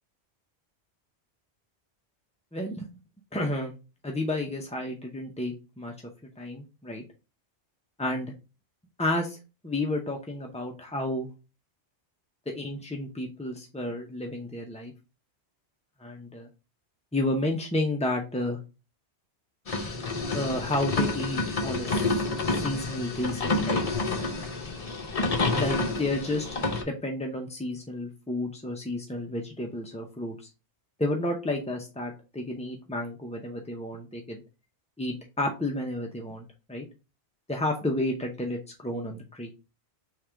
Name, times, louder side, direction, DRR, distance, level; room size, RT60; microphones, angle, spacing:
voice 1, 2.5-2.9 3.3-3.7 4.0-5.9 6.4-7.0 8.0-8.3 9.0-9.4 9.6-11.3 12.5-14.9 16.0-16.5 17.1-18.6 20.3-23.8 25.6-26.5 26.8-30.5 31.0-34.4 35.0-36.9 37.5-39.5, left 1 dB, 10° left, 1 dB, 0.4 m, -31 dB
sound 1, 19.7-26.8, left 3 dB, 35° left, 0.8 m, -29 dB
3.7 x 3.2 x 4.4 m, 0.30 s
omnidirectional pair, 1.1 m